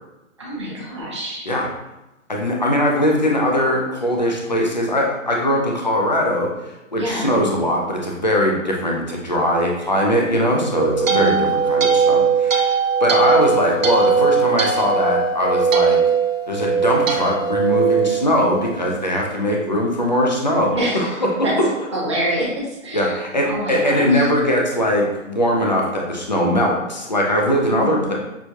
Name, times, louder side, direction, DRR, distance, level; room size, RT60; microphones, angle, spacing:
voice 1, 0.4-1.5 6.9-7.4 11.1-11.5 20.7-21.5 21.9-23.2 23.4-24.2 27.7-28.1, right 1 dB, 20° right, -7 dB, 0.8 m, -26 dB
voice 2, 2.3-6.5 6.9-12.7 13.0-16.0 16.5-21.7 22.9-28.1, equal, 35° left, -1 dB, 0.4 m, -20 dB
sound 1, 10.5-18.9, right 5 dB, 70° right, 0.8 m, -19 dB
6.2 x 2.3 x 2.7 m, 0.98 s
hypercardioid pair, 180°, 40 cm